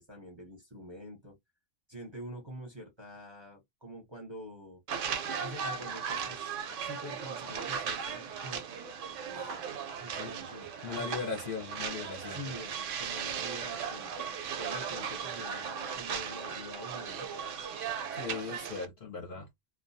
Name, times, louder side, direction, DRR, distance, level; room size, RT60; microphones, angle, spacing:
voice 1, 0.0-1.3 1.9-4.8 5.4-9.7 10.0-11.5 12.3-14.1 14.6-17.3, equal, 30° right, 0.6 m, -46 dB
sound 1, 4.9-18.9, right 7 dB, 85° right, 0.9 m, -37 dB
voice 2, 10.8-12.4 18.1-19.5, left 5 dB, 55° left, 0.7 m, -38 dB
2.3 x 2.2 x 2.6 m
omnidirectional pair, 1.2 m